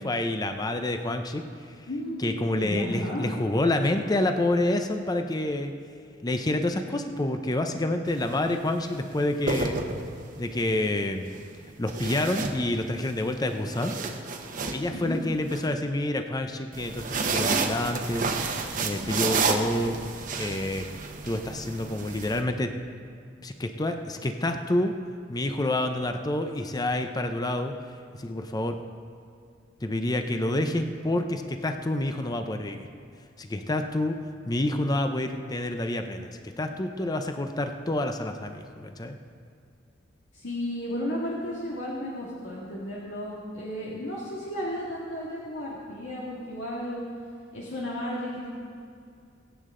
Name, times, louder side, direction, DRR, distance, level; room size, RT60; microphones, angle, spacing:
voice 1, 0.0-1.5 2.2-5.7 6.2-9.8 10.4-11.3 11.8-13.9 14.7-19.9 20.3-20.9 21.2-22.7 23.4-24.9 25.3-27.7 28.2-28.8 29.8-32.9 33.4-34.2 34.5-39.2, left 1 dB, 20° left, 6 dB, 0.6 m, -28 dB
voice 2, 1.9-3.3 14.9-15.2 40.3-47.0 47.5-48.5, equal, 80° left, -6 dB, 2.0 m, -33 dB
sound 1, 8.1-8.3 9.2-10.4 11.9-13.1 13.5-15.6 16.7-22.4, right 4 dB, 45° right, 1.1 m, -30 dB
23.5 x 8.3 x 3.8 m, 2.4 s
head